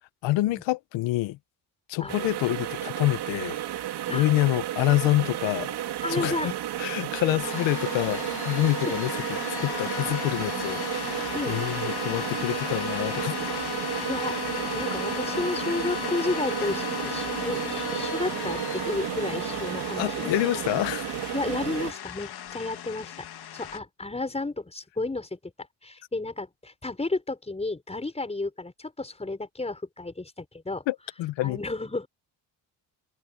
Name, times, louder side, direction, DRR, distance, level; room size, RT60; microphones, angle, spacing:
voice 1, 0.2-1.4 1.9-3.6 4.1-5.8 6.1-6.5 6.8-9.2 9.6-13.3 20.0-21.1 30.9-31.6, left 17 dB, 90° left, 1.0 m, -27 dB
sound 1, 2.1-21.9, right 12 dB, 65° right, 2.3 m, -32 dB
voice 2, 6.0-6.5 11.3-11.6 14.0-14.4 14.7-20.3 21.3-23.3 23.5-25.4 25.8-30.8 31.4-32.1, left 2 dB, 15° left, 5.8 m, -32 dB
sound 2, 7.4-23.8, left 10 dB, 60° left, 2.3 m, -35 dB
cardioid pair, 105°, 43 cm